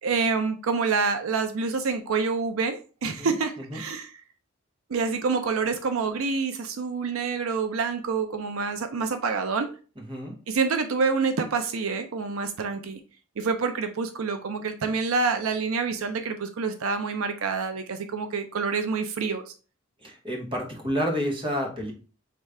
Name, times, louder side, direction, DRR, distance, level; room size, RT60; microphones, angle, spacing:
voice 1, 0.0-4.1 4.9-9.7 10.5-13.0 13.4-19.5, right 4 dB, 80° right, 7 dB, 0.5 m, -27 dB
voice 2, 3.2-3.8 10.0-10.4 20.0-21.9, equal, 25° right, 0 dB, 1.1 m, -30 dB
5.0 x 3.2 x 3.3 m, 0.36 s
head